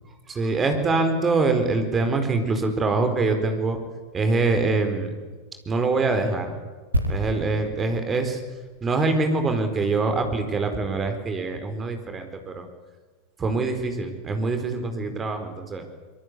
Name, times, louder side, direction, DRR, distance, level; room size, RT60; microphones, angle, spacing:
voice 1, 0.3-3.8 4.1-5.1 5.7-6.5 7.1-8.4 8.8-12.7 13.4-15.9, right 3 dB, 20° right, 7 dB, 4.5 m, -24 dB
sound 1, 6.9-10.6 10.8-11.0, equal, 80° right, 2.9 m, -32 dB
25.0 x 22.5 x 8.4 m, 1.3 s
figure-of-eight pair, 90°, 0 cm